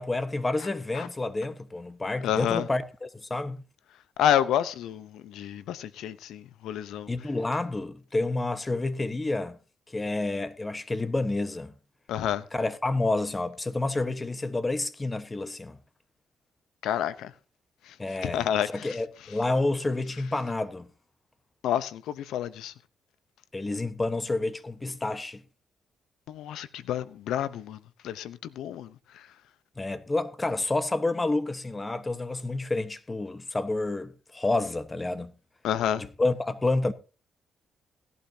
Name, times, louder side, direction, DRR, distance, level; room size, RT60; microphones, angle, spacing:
voice 1, 0.0-3.6 7.1-9.6 9.9-11.7 12.5-15.8 18.0-18.5 18.7-20.9 23.5-25.4 29.8-35.3 36.0-36.9, left 2 dB, 25° left, 1.2 m, -29 dB
voice 2, 2.2-2.7 4.2-7.1 12.1-12.4 16.8-17.3 17.8-19.0 21.6-22.7 26.3-27.8 28.0-29.3 35.6-36.0, left 10 dB, 80° left, 0.8 m, -29 dB
17.0 x 12.0 x 2.8 m
supercardioid pair, 60°, 0 cm